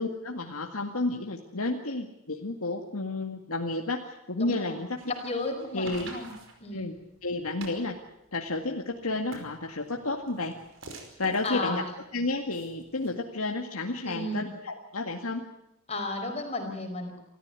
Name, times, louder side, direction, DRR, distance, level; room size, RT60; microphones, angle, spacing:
voice 1, 0.0-5.0 5.7-6.1 6.7-7.0 7.2-8.0 8.3-10.5 11.2-11.8 12.1-15.4, left 2 dB, 80° left, 2 dB, 2.0 m, -31 dB
voice 2, 4.4-4.8 5.1-6.3 6.6-6.9 11.4-11.8 14.1-14.5 15.9-17.2, left 2 dB, 30° left, 4 dB, 4.7 m, -33 dB
sound 1, 4.8-13.1, right 2 dB, 60° right, 5.2 m, -48 dB
28.0 x 14.5 x 9.7 m, 0.84 s
head